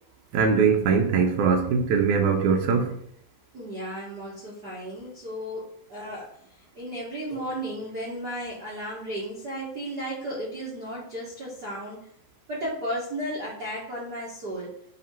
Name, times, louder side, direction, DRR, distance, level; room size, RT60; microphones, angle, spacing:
voice 1, 0.3-2.9, right 5 dB, 90° right, 1.7 m, -21 dB
voice 2, 3.5-6.3 6.7-12.0 12.5-14.7, equal, 60° right, 1.0 m, -34 dB
7.7 x 2.9 x 4.4 m
omnidirectional pair, 4.2 m